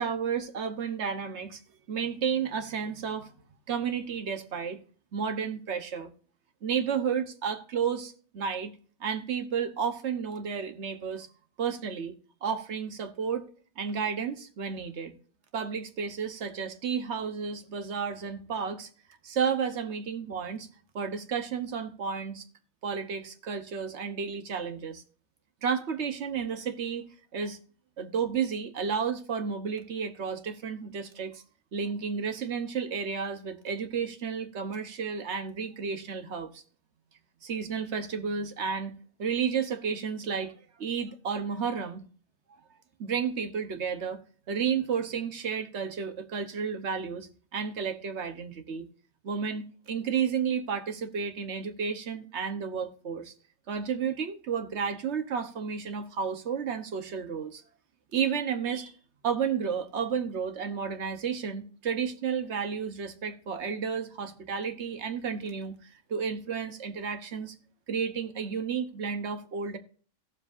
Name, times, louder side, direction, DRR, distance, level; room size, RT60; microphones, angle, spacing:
voice 1, 0.0-1.6 1.9-3.3 3.7-4.8 5.1-6.1 6.6-8.7 9.0-11.3 11.6-12.1 12.4-13.4 13.8-15.1 15.5-18.9 19.2-20.7 20.9-22.4 22.8-25.0 25.6-27.0 27.3-27.6 28.0-31.4 31.7-36.6 37.4-40.5 40.8-42.0 43.0-44.2 44.5-48.9 49.2-53.3 53.7-57.6 58.1-58.9 59.2-67.5 67.9-69.8, right 6 dB, 60° right, 1.3 m, -32 dB
17.0 x 7.4 x 2.5 m
omnidirectional pair, 1.4 m